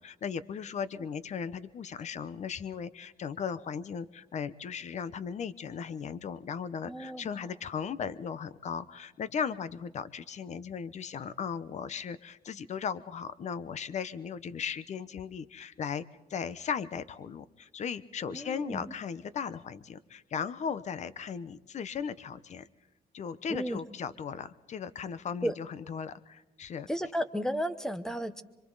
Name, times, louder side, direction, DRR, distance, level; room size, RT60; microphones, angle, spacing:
voice 1, 0.0-16.0 16.3-22.7 23.1-26.9, left 7 dB, 45° left, 16 dB, 0.8 m, -37 dB
voice 2, 6.9-7.3 18.3-18.9 23.5-23.8 25.4-25.5 26.9-28.4, equal, 5° left, 12 dB, 1.0 m, -33 dB
26.5 x 24.5 x 4.0 m, 1.1 s
cardioid pair, 140°, 17 cm